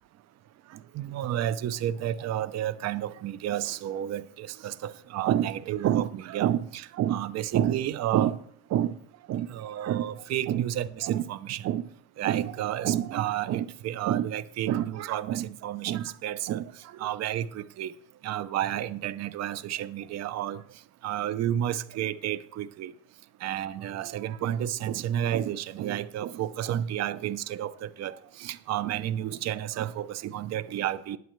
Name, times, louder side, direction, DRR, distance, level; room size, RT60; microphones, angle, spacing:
voice 1, 0.9-8.4 8.7-9.0 9.3-11.9 12.2-17.9 18.2-20.6 21.0-22.9 23.4-31.2, right 11 dB, 35° right, 0.6 m, -30 dB
20.5 x 7.6 x 3.1 m
supercardioid pair, 125°, 48 cm